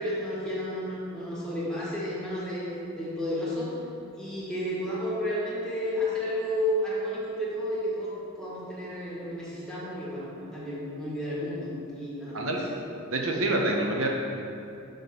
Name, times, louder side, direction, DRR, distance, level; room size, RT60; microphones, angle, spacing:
voice 1, 0.0-2.7 2.9-3.7 4.2-12.5, left 1 dB, 5° left, -9 dB, 1.4 m, -32 dB
voice 2, 12.3-12.7 13.1-14.1, right 2 dB, 70° right, 0 dB, 0.7 m, -27 dB
5.5 x 3.6 x 5.7 m, 2.6 s
head